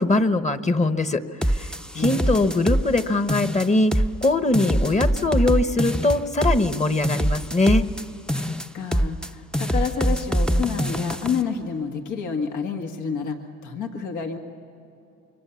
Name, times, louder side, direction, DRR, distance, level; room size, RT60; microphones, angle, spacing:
voice 1, 0.0-1.7 1.9-7.9, left 2 dB, 25° left, 10 dB, 1.1 m, -22 dB
sound 1, 1.4-3.0 3.3-4.3 4.5-8.0 8.3-9.3 9.5-11.4, equal, 5° left, 0.6 m, -24 dB
voice 2, 1.9-2.5 8.4-14.4, left 6 dB, 75° left, 4 dB, 1.9 m, -29 dB
26.0 x 23.5 x 7.1 m, 2.8 s
cardioid pair, 90°, 30 cm